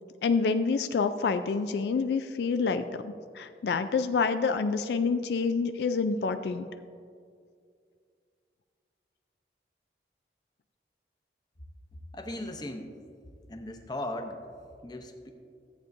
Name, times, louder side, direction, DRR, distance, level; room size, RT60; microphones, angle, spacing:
voice 1, 0.2-6.7, left 4 dB, 70° left, 9 dB, 0.3 m, -27 dB
voice 2, 11.9-12.9 13.5-14.5 14.8-15.3, left 1 dB, 25° left, 4 dB, 0.7 m, -38 dB
14.0 x 8.3 x 2.6 m, 2.2 s
head